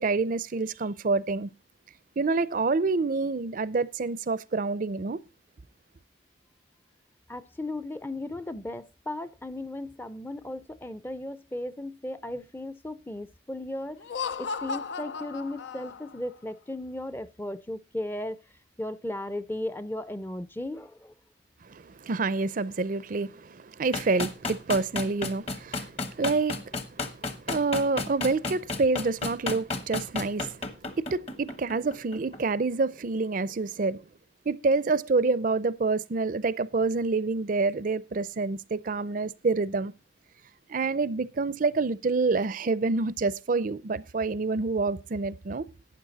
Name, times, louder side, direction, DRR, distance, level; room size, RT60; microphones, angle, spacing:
voice 1, 0.0-1.5 2.2-5.2 21.6-34.0 34.5-39.9 40.7-45.6, right 3 dB, 50° right, 0.5 m, -27 dB
voice 2, 7.3-14.0 14.4-18.4 18.8-21.1, left 1 dB, 10° left, 0.5 m, -36 dB
Laughter, 14.0-16.3, left 5 dB, 75° left, 0.5 m, -35 dB
sound 1, 23.9-32.4, left 3 dB, 35° left, 1.1 m, -32 dB
12.0 x 8.8 x 4.0 m
head